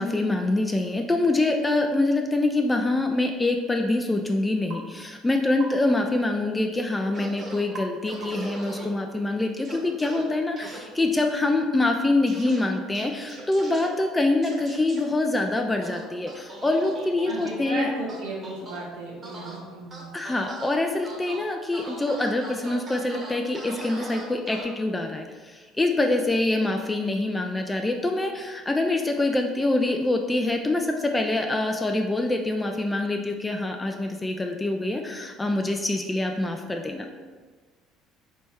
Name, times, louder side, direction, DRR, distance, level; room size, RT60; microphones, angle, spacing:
voice 1, 0.0-17.9 20.1-37.1, left 2 dB, 15° left, 3 dB, 0.3 m, -25 dB
sound 1, 4.7-4.9 5.6-5.8 7.7-8.0 8.2-8.6, right 3 dB, 60° right, 1.0 m, -38 dB
sound 2, 7.1-7.6 8.1-8.9 9.6-10.2 10.6-10.8 12.3-12.6 12.9-13.9 14.4-15.0 15.8-17.5 18.1-18.8 19.2-19.6 19.9-20.7 21.0-21.4 21.7-24.6, right 2 dB, 35° right, 1.1 m, -40 dB
voice 2, 17.2-20.1, right 2 dB, 90° right, -2 dB, 1.1 m, -35 dB
3.4 x 3.1 x 4.5 m, 1.4 s
supercardioid pair, 90°, 0 cm